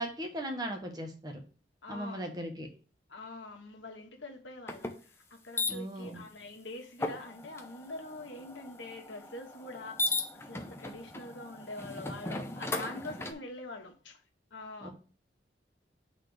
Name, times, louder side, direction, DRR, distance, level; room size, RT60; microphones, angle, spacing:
voice 1, 0.0-1.4 1.9-2.7 5.7-6.2 14.8-14.9, right 1 dB, 20° right, 1.0 m, -38 dB
voice 2, 1.8-2.2 3.1-14.2 14.5-14.9, left 2 dB, 85° left, 1.4 m, -45 dB
sound 1, 4.7-4.9 5.6-5.7 7.0-13.3, left 2 dB, 15° left, 0.6 m, -37 dB
9.8 x 4.1 x 3.3 m
head